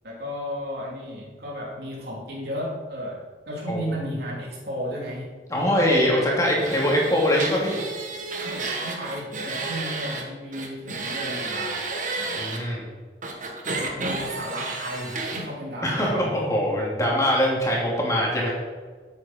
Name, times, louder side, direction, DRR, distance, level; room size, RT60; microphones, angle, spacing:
voice 1, 0.0-5.3 8.3-11.9 12.2-12.5 13.8-16.6, equal, 60° right, -4 dB, 3.5 m, -34 dB
voice 2, 3.7-4.1 5.5-7.8 12.4-12.8 15.8-18.5, equal, 20° left, -3 dB, 2.8 m, -23 dB
sound 1, 6.6-10.2 10.5-12.6 13.2-15.4, right 3 dB, 45° right, 1.7 m, -31 dB
12.0 x 8.6 x 4.5 m, 1.5 s
head